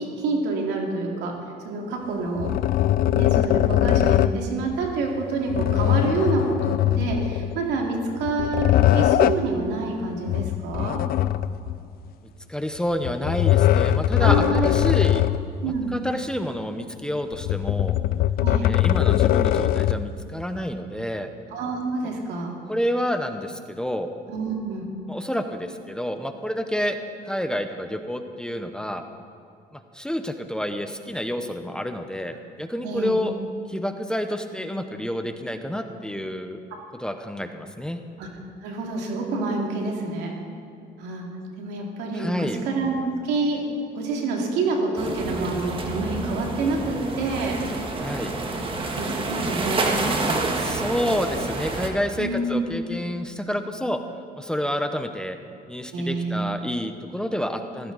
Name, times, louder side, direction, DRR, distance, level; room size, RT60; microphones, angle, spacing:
voice 1, 0.0-1.3 1.6-2.5 3.1-11.0 14.2-14.7 15.1-15.2 15.6-15.9 18.4-18.7 21.5-22.5 24.3-24.9 32.8-33.2 36.7-36.8 38.2-38.3 38.6-40.3 41.0-41.3 41.6-43.6 43.9-47.6 48.9-49.8 52.2-53.0 55.9-56.5, right 3 dB, 90° right, 0 dB, 2.6 m, -27 dB
sound 1, 2.4-4.4 5.5-7.6 8.2-9.5 10.3-11.8 13.0-15.5 15.9-16.0 17.3-20.1, left 12 dB, 60° left, 0.4 m, -21 dB
voice 2, 12.5-15.3 15.9-18.0 18.6-21.3 22.7-24.1 25.1-27.0 27.2-29.0 29.7-33.3 33.7-36.6 37.0-38.0 42.1-42.6 48.0-48.3 50.5-54.0 54.4-55.4 55.7-57.9, equal, 5° left, 7 dB, 0.8 m, -29 dB
sound 2, 45.0-51.9, right 3 dB, 30° right, 1.7 m, -28 dB
15.5 x 15.0 x 4.1 m, 2.6 s
cardioid pair, 110°, 17 cm